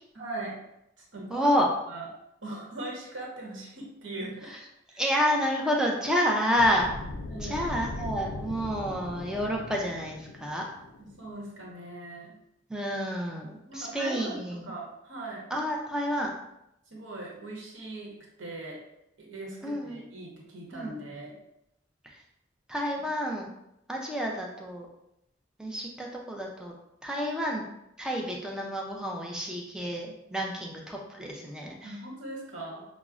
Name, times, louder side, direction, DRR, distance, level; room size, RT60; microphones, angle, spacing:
voice 1, 0.2-0.6 1.1-1.5 1.9-2.1 2.4-4.5 4.9-5.0 7.3-7.6 11.0-12.3 13.7-14.4 14.6-15.4 16.9-18.1 18.4-18.8 19.2-21.3 23.0-23.1 31.8-32.9, right 2 dB, 65° right, -3 dB, 0.9 m, -40 dB
voice 2, 1.3-1.7 4.5-4.6 5.0-6.9 7.4-10.6 12.7-14.7 15.5-16.3 19.6-20.0 20.7-21.0 22.7-23.5 23.9-24.9 25.6-26.7 27.0-27.6 28.0-32.0, equal, 5° right, -1 dB, 0.5 m, -29 dB
sound 1, 6.6-11.5, left 2 dB, 80° left, 0.4 m, -39 dB
5.7 x 2.0 x 2.4 m, 0.82 s
head